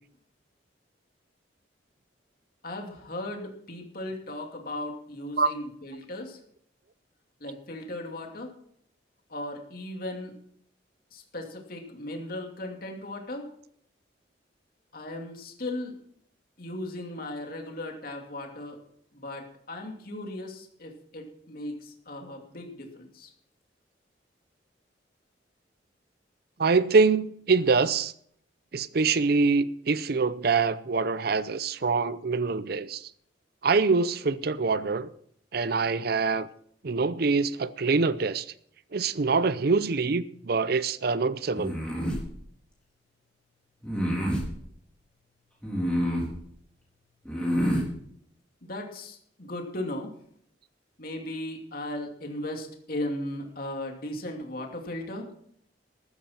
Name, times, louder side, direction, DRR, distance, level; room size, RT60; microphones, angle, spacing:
voice 1, 2.6-6.4 7.4-8.5 9.3-10.3 11.1-13.5 14.9-16.0 16.6-18.8 19.1-23.3 48.6-50.1 51.0-55.3, left 1 dB, 50° left, 2.6 m, -37 dB
voice 2, 26.6-28.1 28.7-33.1 33.6-35.1 35.5-36.5 36.8-38.5 38.9-41.8, right 4 dB, 55° right, 0.6 m, -24 dB
sound 1, 41.5-42.2 43.8-44.5 45.6-46.3 47.3-47.9, equal, 5° left, 3.9 m, -27 dB
14.5 x 12.5 x 4.4 m
head